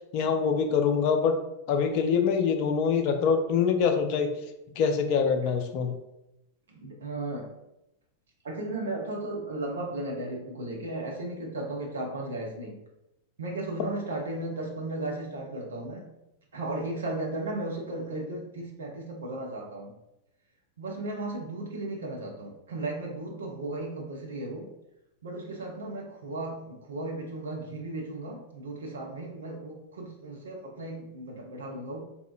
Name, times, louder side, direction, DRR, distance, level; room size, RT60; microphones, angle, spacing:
voice 1, 0.1-1.4 1.7-4.3 4.8-5.9, left 6 dB, 45° left, 5 dB, 0.4 m, -24 dB
voice 2, 6.7-7.5 8.4-12.8 13.4-16.1 16.5-19.9 20.8-24.7 25.2-32.0, right 2 dB, 70° right, 0 dB, 0.7 m, -35 dB
3.7 x 2.8 x 2.4 m, 0.88 s
figure-of-eight pair, 90°, 0 cm